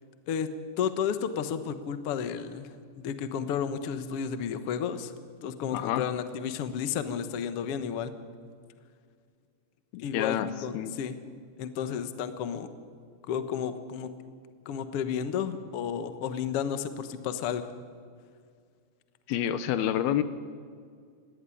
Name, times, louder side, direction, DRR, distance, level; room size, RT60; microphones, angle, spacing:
voice 1, 0.8-2.7 3.0-5.1 5.4-8.1 10.0-11.1 11.6-12.7 13.3-14.1 14.6-17.7, left 8 dB, 65° left, 10 dB, 1.5 m, -32 dB
voice 2, 5.7-6.0 9.9-10.9 19.3-20.2, left 10 dB, 90° left, 13 dB, 2.9 m, -28 dB
20.0 x 17.0 x 9.9 m, 2.1 s
omnidirectional pair, 4.4 m